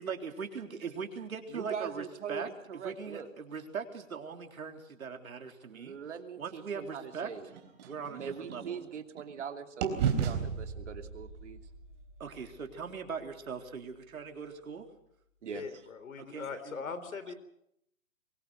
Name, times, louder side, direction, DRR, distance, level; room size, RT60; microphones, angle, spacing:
voice 1, 0.0-6.0 6.4-7.5 7.8-8.8 12.2-14.9 16.2-16.8, right 5 dB, 80° right, 4 dB, 4.0 m, -40 dB
voice 2, 1.5-3.3 5.7-7.5 8.1-11.6 15.4-15.6, right 7 dB, 55° right, 5 dB, 2.8 m, -42 dB
sound 1, 7.1-9.4 9.8-13.8, right 7 dB, 30° right, 3.8 m, -36 dB
voice 3, 15.5-17.4, left 5 dB, 75° left, 12 dB, 4.0 m, -41 dB
23.5 x 22.0 x 6.5 m, 0.76 s
hypercardioid pair, 165°, 41 cm